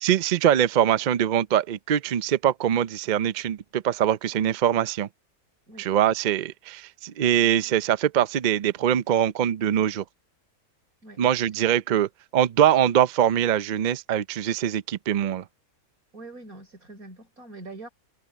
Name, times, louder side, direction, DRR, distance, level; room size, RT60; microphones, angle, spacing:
voice 1, 0.0-5.1 5.8-10.0 11.2-15.4, right 10 dB, 85° right, 0.4 m, -23 dB
voice 2, 16.1-17.9, right 2 dB, 70° right, 5.5 m, -43 dB
omnidirectional pair, 1.6 m